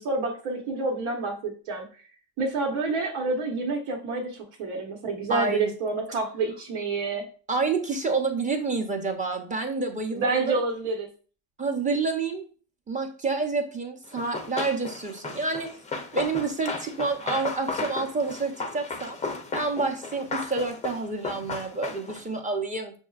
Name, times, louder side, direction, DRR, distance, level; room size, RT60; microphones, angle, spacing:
voice 1, 0.0-1.9 2.4-7.2 10.1-11.1, right 3 dB, 80° right, -1 dB, 1.1 m, -28 dB
voice 2, 5.3-5.7 7.5-10.3 11.6-12.4 12.9-15.7 16.1-19.2 19.5-22.9, right 3 dB, 15° right, 4 dB, 0.7 m, -28 dB
Run, 14.2-22.3, left 3 dB, 15° left, 0.5 m, -35 dB
6.2 x 2.7 x 2.4 m, 0.38 s
cardioid pair, 115°, 46 cm